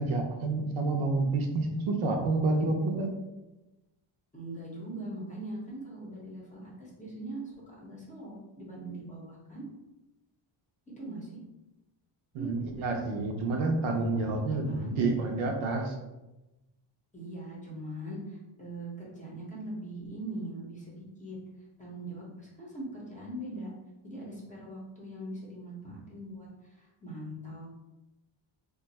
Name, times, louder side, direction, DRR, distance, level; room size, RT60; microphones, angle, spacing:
voice 1, 0.0-3.1 12.3-15.9, right 3 dB, 75° right, 2 dB, 0.7 m, -29 dB
voice 2, 4.3-9.6 11.0-11.4 12.4-12.5 14.7-15.0 17.1-21.4 21.8-23.7 24.0-27.7, right 1 dB, 15° left, -5 dB, 0.7 m, -41 dB
2.5 x 2.3 x 4.0 m, 1.0 s
cardioid pair, 165°, 48 cm